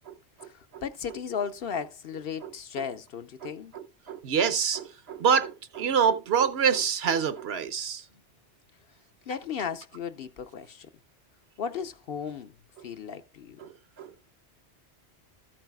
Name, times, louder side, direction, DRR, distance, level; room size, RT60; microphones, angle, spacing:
voice 1, 0.4-3.7 8.1-8.2 9.2-10.9 11.6-12.6 12.8-13.7, left 7 dB, 60° left, 0.8 m, -35 dB
voice 2, 3.4-8.0 13.6-13.7 14.0-14.2, right 7 dB, 65° right, 1.0 m, -26 dB
13.5 x 8.7 x 2.3 m
omnidirectional pair, 1.2 m